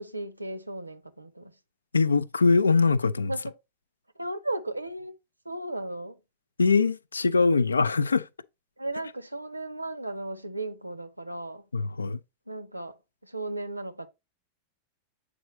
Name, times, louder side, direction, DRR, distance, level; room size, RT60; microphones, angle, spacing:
voice 1, 0.0-1.6 3.3-3.4 4.2-5.1 5.4-6.2 8.8-11.6 12.5-12.9 13.2-14.1, right 2 dB, 85° right, 0.6 m, -35 dB
voice 2, 1.9-3.3 6.6-8.3 11.7-12.2, left 4 dB, 75° left, 0.3 m, -22 dB
7.8 x 4.7 x 3.1 m
figure-of-eight pair, 90°, 0 cm